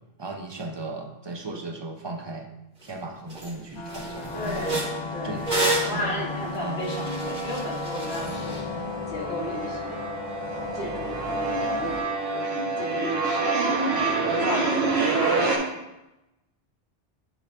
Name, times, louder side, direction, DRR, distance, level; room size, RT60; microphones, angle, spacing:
voice 1, 0.2-2.5 2.8-4.8 5.2-5.5 5.9-6.2 6.6-6.9, right 2 dB, 30° right, 3 dB, 0.7 m, -36 dB
sound 1, 2.8-2.9 3.3-3.5 3.9-8.6, right 2 dB, 45° right, 1.5 m, -30 dB
sound 2, 3.8-12.0, left 3 dB, 30° left, 0.6 m, -35 dB
voice 2, 4.3-5.5 5.8-10.2 10.7-15.3, left 1 dB, 75° left, -2 dB, 1.7 m, -35 dB
sound 3, 7.3-8.1 8.4-15.6, right 3 dB, 85° right, 1.4 m, -27 dB
9.1 x 3.8 x 3.5 m, 0.93 s
omnidirectional pair, 1.0 m